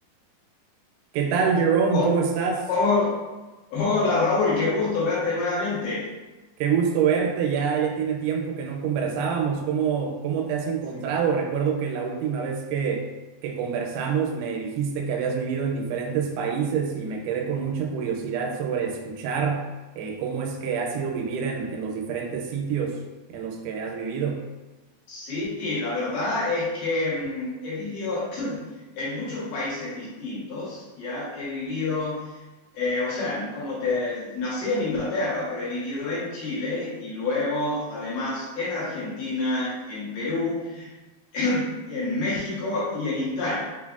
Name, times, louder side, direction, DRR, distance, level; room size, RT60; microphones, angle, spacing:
voice 1, 1.1-2.7 6.6-13.1 13.4-19.7 20.0-23.0 23.3-24.4, right 6 dB, 85° right, 2 dB, 2.5 m, -26 dB
voice 2, 2.7-3.2 3.7-6.1 25.1-28.7 28.9-32.4 32.7-40.9 41.3-43.6, left 3 dB, 75° left, -9 dB, 2.9 m, -27 dB
6.1 x 2.0 x 2.3 m, 1.2 s
omnidirectional pair, 4.5 m